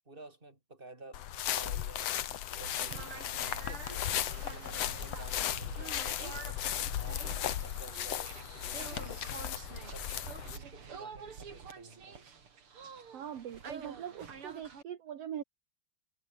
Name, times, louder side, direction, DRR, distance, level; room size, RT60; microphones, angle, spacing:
voice 1, 0.0-2.1 2.6-6.6 6.9-9.4 9.9-10.1 10.4-12.3, right 2 dB, 10° right, 4.9 m, -53 dB
sound 1, 1.1-10.6, left 11 dB, 80° left, 1.4 m, -36 dB
sound 2, 2.6-14.8, right 6 dB, 35° right, 3.1 m, -47 dB
voice 2, 13.1-15.4, right 9 dB, 55° right, 1.9 m, -42 dB
omnidirectional pair, 4.7 m